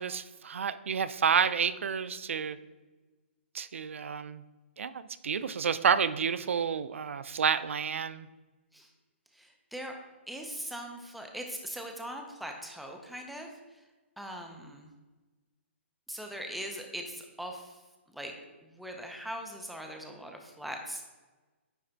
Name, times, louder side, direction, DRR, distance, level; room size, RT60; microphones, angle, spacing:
voice 1, 0.0-2.6 3.5-4.4 4.8-8.3, right 6 dB, 85° right, 15 dB, 0.4 m, -29 dB
voice 2, 9.3-10.0 10.3-13.8 14.2-14.9 16.1-17.8 18.1-18.3 18.6-21.0, equal, ahead, 3 dB, 0.4 m, -41 dB
9.4 x 3.3 x 3.9 m, 1.2 s
hypercardioid pair, 170°, 7 cm